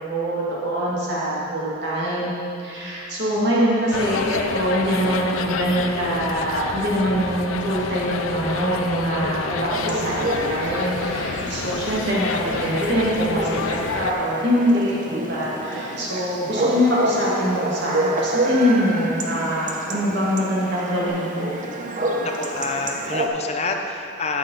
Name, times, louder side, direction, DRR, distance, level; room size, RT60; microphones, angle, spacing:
voice 1, 0.1-2.3 2.6-21.6, equal, 60° right, -6 dB, 2.2 m, -23 dB
sound 1, 3.3-13.8 20.7-21.1, right 1 dB, 75° right, 2.4 m, -41 dB
sound 2, 3.9-14.1, left 5 dB, 90° left, 0.5 m, -29 dB
Chatter / Bark / Livestock farm animals working animals, 9.7-23.3, right 1 dB, 40° right, 0.8 m, -28 dB
voice 2, 22.2-24.4, left 3 dB, 35° left, 3 dB, 0.7 m, -28 dB
12.0 x 7.5 x 4.1 m, 2.6 s
head